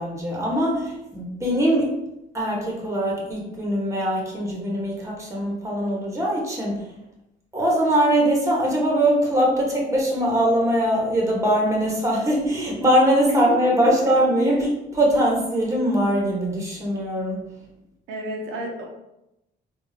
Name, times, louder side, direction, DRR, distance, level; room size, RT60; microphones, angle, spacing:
voice 1, 0.0-2.0 2.3-6.8 7.5-17.4, equal, 15° right, -3 dB, 1.1 m, -22 dB
voice 2, 18.1-18.8, right 1 dB, 90° right, -1 dB, 0.7 m, -32 dB
3.6 x 2.4 x 2.7 m, 0.88 s
cardioid pair, 90°, 20 cm